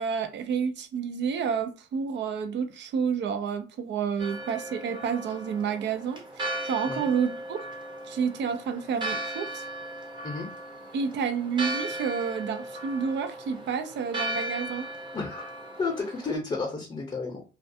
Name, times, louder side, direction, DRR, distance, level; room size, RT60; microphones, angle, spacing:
voice 1, 0.0-6.2 6.6-7.7 8.1-9.6 10.9-14.9, right 6 dB, 65° right, 0.5 m, -29 dB
Church bell, 4.2-16.4, right 1 dB, 25° right, 0.8 m, -37 dB
voice 2, 15.1-15.5 15.8-17.4, left 4 dB, 25° left, 0.6 m, -32 dB
2.3 x 2.2 x 2.6 m
cardioid pair, 90°, 20 cm